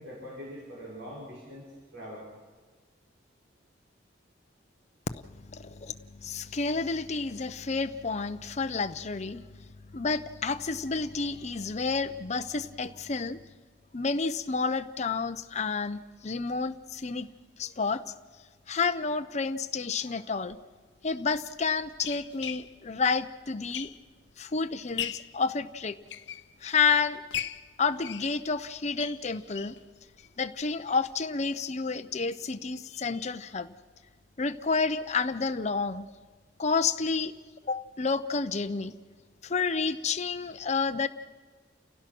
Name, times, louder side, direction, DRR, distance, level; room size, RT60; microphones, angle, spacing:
voice 1, 0.0-1.6 1.9-2.3, equal, 80° right, -5 dB, 5.9 m, -43 dB
voice 2, 5.1-13.4 13.9-17.3 17.6-18.0 18.7-20.6 21.0-23.9 24.4-26.0 26.6-27.2 27.8-29.8 30.4-33.7 34.4-36.1 36.6-37.3 37.6-38.9 39.4-41.1, left 4 dB, 40° left, 9 dB, 0.7 m, -30 dB
sound 1, 20.5-20.6 21.3-24.3 24.7-25.4 25.9-26.9 27.3-29.8 30.2-30.3 30.6-30.7 31.0-31.1, left 10 dB, 75° left, 0.7 m, -39 dB
29.5 x 16.5 x 6.1 m, 1.4 s
head